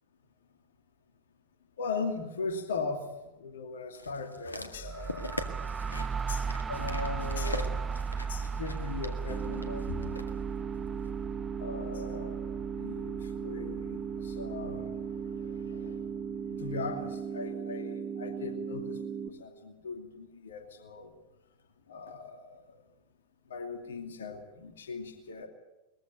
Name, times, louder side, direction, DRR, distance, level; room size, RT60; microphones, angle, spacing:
voice 1, 1.8-3.1 3.4-5.4 6.3-10.3 11.6-16.1 16.6-21.1 21.9-22.8 23.5-25.5, left 4 dB, 65° left, 6 dB, 2.5 m, -39 dB
sound 1, 3.9-10.3 11.0-11.1, left 1 dB, 80° left, 1.7 m, -42 dB
sound 2, 4.7-16.4, right 5 dB, 20° right, 0.8 m, -37 dB
sound 3, 9.3-19.3, right 7 dB, 40° right, 1.6 m, -37 dB
21.5 x 15.0 x 9.4 m, 1.0 s
figure-of-eight pair, 90°, 0 cm